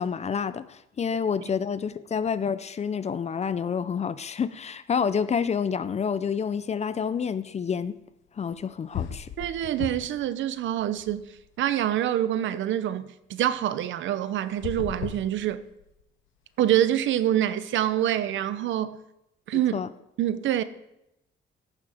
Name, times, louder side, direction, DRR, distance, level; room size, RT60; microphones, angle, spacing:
voice 1, 0.0-8.0 8.4-9.3 19.7-19.9, left 6 dB, 35° left, 0.5 m, -28 dB
sound 1, 8.5-8.6 8.9-10.3 10.6-11.7 14.4-16.0, left 9 dB, 80° left, 0.7 m, -37 dB
voice 2, 9.4-11.3 11.6-15.6 16.6-19.0 19.5-19.8 20.2-20.6, right 11 dB, 75° right, 0.6 m, -26 dB
14.0 x 6.7 x 3.5 m
cardioid pair, 90°, 20 cm